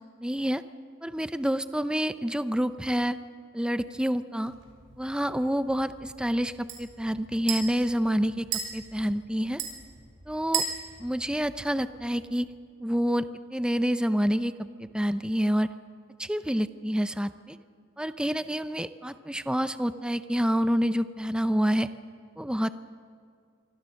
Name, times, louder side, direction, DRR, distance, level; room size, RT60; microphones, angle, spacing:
voice 1, 0.2-0.6 1.0-3.2 3.5-4.5 5.0-8.4 8.7-9.6 10.3-10.6 11.0-12.5 12.8-14.5 14.8-15.7 16.2-17.6 18.0-21.9 22.4-22.7, equal, 5° right, 11 dB, 0.6 m, -27 dB
sound 1, 4.4-12.3, right 7 dB, 80° right, 6.3 m, -38 dB
25.5 x 25.0 x 6.4 m, 2.2 s
head